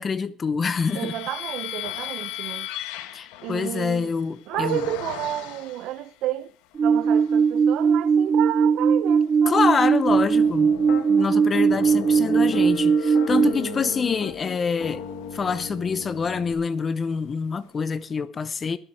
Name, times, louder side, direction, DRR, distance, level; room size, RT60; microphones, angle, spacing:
voice 1, 0.0-1.1 3.1-4.9 9.5-10.7 11.1-15.0 15.3-18.8, left 5 dB, 30° left, 0.8 m, -26 dB
sound 1, 0.6-6.1 6.7-7.5 8.0-17.2, left 13 dB, 90° left, 1.4 m, -39 dB
voice 2, 0.9-2.7 3.4-4.1 4.5-6.5 6.8-9.6 11.2-11.4 13.4-14.0, right 14 dB, 70° right, 0.9 m, -31 dB
sound 2, 6.7-13.5, right 6 dB, 30° right, 0.5 m, -19 dB
Piano, 10.1-11.1 11.5-12.8 13.2-16.5, left 8 dB, 70° left, 2.1 m, -37 dB
21.5 x 7.6 x 4.9 m
cardioid pair, 125°, 0 cm